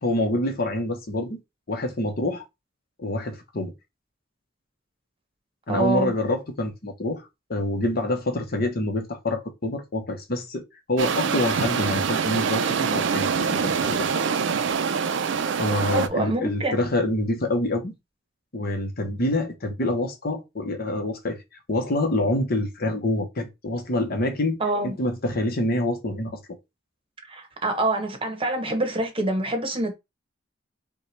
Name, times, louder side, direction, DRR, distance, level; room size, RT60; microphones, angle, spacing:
voice 1, 0.0-1.4 1.7-2.5 3.0-3.7 5.7-10.6 10.9-14.3 15.6-17.9 18.5-21.4 21.7-26.4, left 1 dB, 50° left, 0.9 m, -26 dB
voice 2, 5.7-6.1 15.9-16.8 24.6-24.9 27.3-29.9, right 2 dB, 30° right, 0.9 m, -26 dB
Wild Atlantic Way, 11.0-16.1, right 6 dB, 65° right, 0.5 m, -25 dB
5.5 x 2.3 x 3.2 m
head